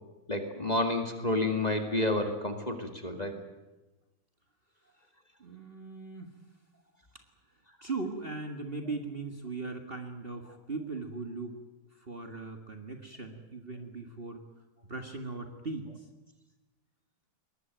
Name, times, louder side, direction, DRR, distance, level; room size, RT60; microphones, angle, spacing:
voice 1, 0.3-3.4, left 2 dB, 20° left, 5 dB, 2.2 m, -30 dB
voice 2, 5.4-6.3 7.8-11.6 12.0-14.4 14.9-15.9, right 3 dB, 30° right, 5 dB, 1.8 m, -39 dB
22.0 x 20.0 x 9.2 m, 1.1 s
omnidirectional pair, 2.1 m